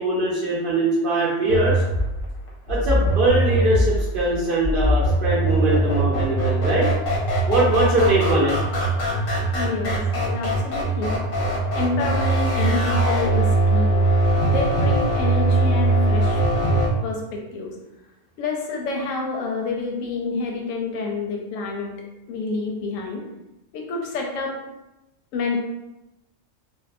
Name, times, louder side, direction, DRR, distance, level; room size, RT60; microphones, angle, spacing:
voice 1, 0.0-1.8 2.7-6.8 7.5-8.5, right 1 dB, 60° right, -6 dB, 0.6 m, -21 dB
sound 1, 1.5-16.9, right 2 dB, 55° left, 0.7 m, -21 dB
voice 2, 7.7-8.1 9.5-11.1 11.7-14.0 14.5-16.4 17.0-17.7 18.4-21.9 22.3-23.2 23.7-24.5 25.3-25.6, left 3 dB, 85° left, 1 dB, 1.0 m, -28 dB
2.6 x 2.1 x 2.5 m, 0.95 s
omnidirectional pair, 1.3 m